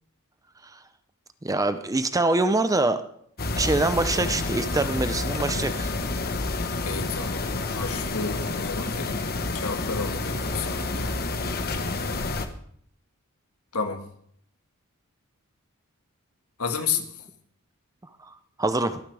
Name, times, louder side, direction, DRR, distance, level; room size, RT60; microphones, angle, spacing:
voice 1, 1.4-3.0 3.6-5.9 18.3-19.0, right 2 dB, 15° right, 10 dB, 0.7 m, -24 dB
sound 1, 3.4-12.5, left 2 dB, 45° left, 1.2 m, -29 dB
voice 2, 6.8-7.5 7.8-9.2 9.5-11.1 13.7-14.0 16.6-17.1, left 5 dB, 80° left, 4 dB, 1.9 m, -31 dB
23.0 x 9.8 x 3.4 m, 0.65 s
head